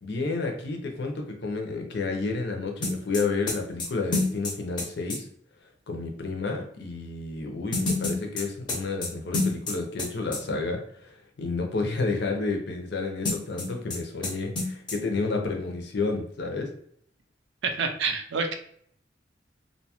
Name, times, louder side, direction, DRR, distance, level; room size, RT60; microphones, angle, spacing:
voice 1, 0.0-5.3 5.9-16.7, left 3 dB, 65° left, 2 dB, 0.6 m, -30 dB
sound 1, 2.8-5.2 7.7-10.1 10.3-10.4 13.2-14.0 14.2-14.3 14.6-15.0, left 3 dB, 25° left, 0.6 m, -28 dB
voice 2, 17.6-18.5, right 4 dB, 70° right, 6 dB, 0.4 m, -27 dB
2.6 x 2.2 x 2.8 m, 0.64 s
head